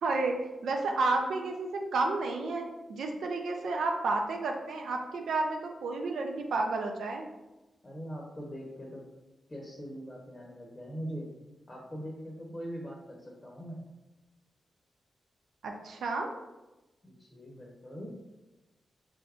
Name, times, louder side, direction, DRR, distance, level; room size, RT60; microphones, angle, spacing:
voice 1, 0.0-0.4 0.6-7.3 15.6-16.3, right 3 dB, 85° right, 2 dB, 0.4 m, -31 dB
voice 2, 7.8-9.0 9.5-11.3 11.7-13.8 17.0-18.2, equal, 25° left, -2 dB, 0.7 m, -42 dB
3.9 x 3.4 x 2.4 m, 1.1 s
cardioid pair, 80°, 0 cm